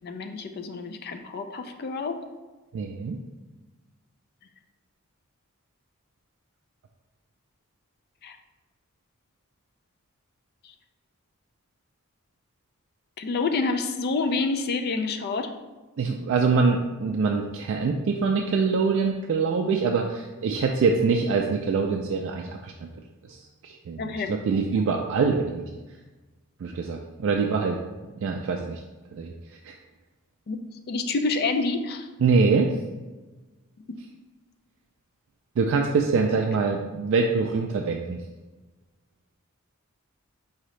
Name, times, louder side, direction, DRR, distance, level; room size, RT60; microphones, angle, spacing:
voice 1, 0.0-2.2 8.2-8.4 13.2-15.5 24.0-24.9 30.5-30.6 30.9-32.1 36.1-36.3, left 3 dB, 45° left, 7 dB, 0.4 m, -28 dB
voice 2, 2.7-3.2 16.0-22.7 23.3-23.4 23.6-25.6 26.6-27.8 28.2-28.8 29.1-29.3 29.6-29.7 32.2-32.7 35.6-38.2, right 4 dB, 60° right, 1 dB, 0.3 m, -24 dB
4.9 x 2.7 x 3.1 m, 1.2 s
head